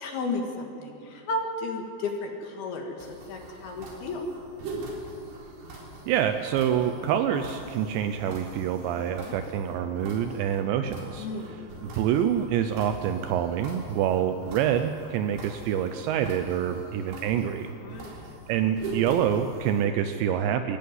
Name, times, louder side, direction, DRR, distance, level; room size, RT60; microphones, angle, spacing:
voice 1, 0.0-4.2 9.2-9.4 11.2-11.6 17.8-18.2, left 2 dB, 60° left, 2 dB, 3.5 m, -33 dB
sound 1, 3.0-19.9, right 2 dB, 60° right, 5.7 m, -42 dB
voice 2, 6.1-11.3 12.0-17.7 18.1-18.2 18.5-20.8, right 9 dB, 80° right, 8 dB, 2.9 m, -26 dB
24.0 x 14.0 x 9.6 m, 2.6 s
omnidirectional pair, 5.4 m